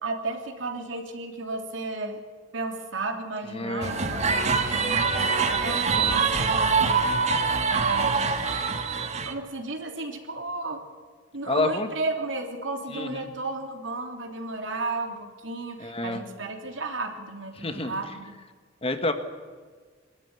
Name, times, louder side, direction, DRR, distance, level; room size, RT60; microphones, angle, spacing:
voice 1, 0.0-2.2 2.5-7.1 7.7-8.4 9.2-10.8 11.3-18.3, right 3 dB, 75° right, 3 dB, 3.1 m, -34 dB
voice 2, 3.5-3.9 6.0-6.2 11.5-11.9 12.9-13.2 15.8-16.2 17.6-17.9 18.8-19.1, left 2 dB, 30° left, 7 dB, 1.6 m, -28 dB
sound 1, 3.8-9.3, right 5 dB, 35° right, 1.6 m, -24 dB
23.5 x 13.0 x 9.6 m, 1.5 s
head